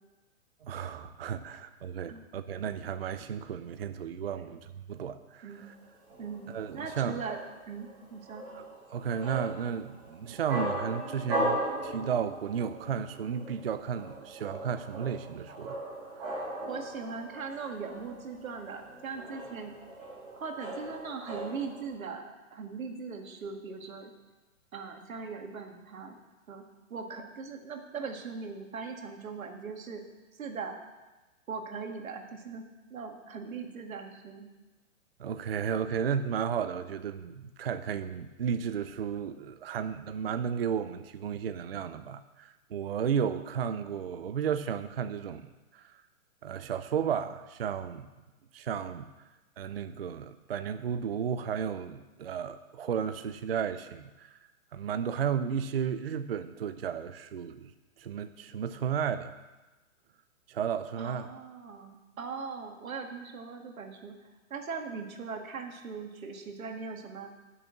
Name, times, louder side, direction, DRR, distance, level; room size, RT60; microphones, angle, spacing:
voice 1, 0.6-5.7 6.5-7.2 8.5-8.6 8.9-15.8 16.4-16.5 35.2-45.5 45.7-46.0 46.4-48.1 48.5-49.1 49.6-54.3 54.7-57.7 58.0-59.3 60.5-61.3, right 7 dB, 50° right, 10 dB, 0.4 m, -33 dB
sound 1, 5.6-21.9, right 1 dB, 10° right, 1.1 m, -38 dB
voice 2, 6.7-7.4 7.7-8.5 16.7-19.7 20.3-24.1 24.7-26.2 26.5-26.6 26.9-30.0 30.3-30.8 31.5-32.7 32.9-34.5 61.0-67.3, right 5 dB, 80° right, 4 dB, 1.9 m, -40 dB
8.6 x 6.8 x 8.6 m, 1.1 s
hypercardioid pair, 180°, 40 cm